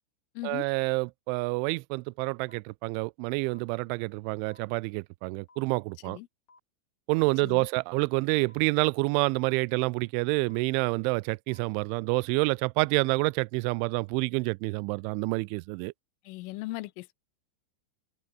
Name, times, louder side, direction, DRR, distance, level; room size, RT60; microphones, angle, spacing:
voice 1, 0.4-6.2 7.1-15.9, right 27 dB, 85° right, 2.7 m, -28 dB
sound 1, 2.5-2.6 3.5-3.6 4.5-4.6 5.5-5.6 6.5-6.6 7.5-7.6 8.5-8.6 9.5-9.6 10.5-10.6 11.5-11.6, left 3 dB, 35° left, 8.2 m, -57 dB
voice 2, 16.3-17.2, left 20 dB, 85° left, 3.3 m, -38 dB
omnidirectional pair, 5.8 m